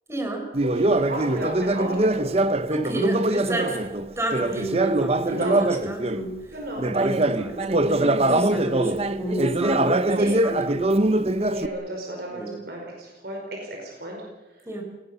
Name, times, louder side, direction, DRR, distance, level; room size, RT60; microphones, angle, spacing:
voice 1, 0.1-0.5 2.7-3.8 4.2-6.6 6.8-11.2 12.3-12.6 14.6-14.8, right 2 dB, 15° right, 3 dB, 4.7 m, -31 dB
Conversation, 0.5-6.3 6.8-11.7, right 2 dB, 35° right, 0.9 m, -23 dB
voice 2, 0.6-2.3 3.5-3.7 5.3-5.6 6.5-6.8 10.1-10.3 11.4-14.2, right 1 dB, 55° right, 0 dB, 5.1 m, -33 dB
29.5 x 19.5 x 6.9 m, 1.1 s
head